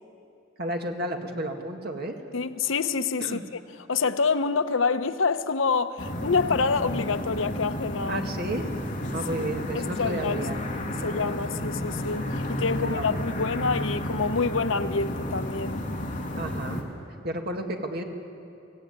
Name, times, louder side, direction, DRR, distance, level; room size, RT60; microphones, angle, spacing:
voice 1, 0.6-2.2 3.2-3.4 8.1-8.7 9.1-10.6 12.7-13.4 16.3-16.9 17.2-18.0, right 1 dB, 55° right, 2.1 m, -32 dB
voice 2, 2.3-3.4 3.9-8.3 9.7-10.4 11.0-15.8, left 4 dB, 80° left, 0.8 m, -27 dB
sound 1, 6.0-16.8, left 1 dB, 40° left, 2.8 m, -32 dB
24.0 x 17.0 x 9.6 m
head